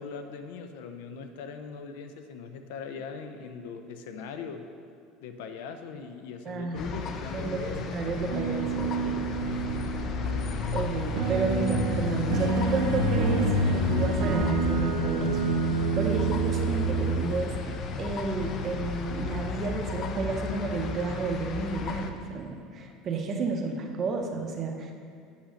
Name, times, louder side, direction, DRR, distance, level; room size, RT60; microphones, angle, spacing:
voice 1, 0.0-4.6 5.2-7.9, left 5 dB, 80° left, 7 dB, 0.7 m, -40 dB
voice 2, 6.4-6.9 7.3-9.2 10.7-15.4 15.7-17.6 18.0-24.9, right 3 dB, 25° right, 3 dB, 0.7 m, -31 dB
sound 1, 6.7-22.1, left 4 dB, 30° left, 0.5 m, -32 dB
sound 2, 8.3-17.2, right 5 dB, 65° right, 0.8 m, -29 dB
8.6 x 5.8 x 5.1 m, 2.4 s
cardioid pair, 180°, 0 cm